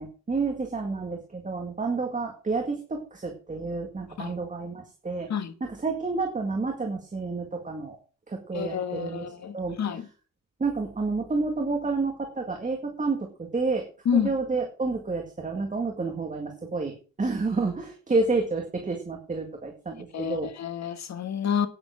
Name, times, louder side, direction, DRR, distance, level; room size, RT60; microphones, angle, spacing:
voice 1, 0.0-5.3 5.6-8.0 8.3-9.2 9.5-9.8 10.6-13.9 14.1-16.9 17.2-20.5, right 3 dB, 25° right, 2.0 m, -29 dB
voice 2, 8.5-10.1 14.0-14.3 20.1-21.7, left 7 dB, 55° left, 1.4 m, -29 dB
9.6 x 9.1 x 6.4 m
wide cardioid pair, 165°, 33 cm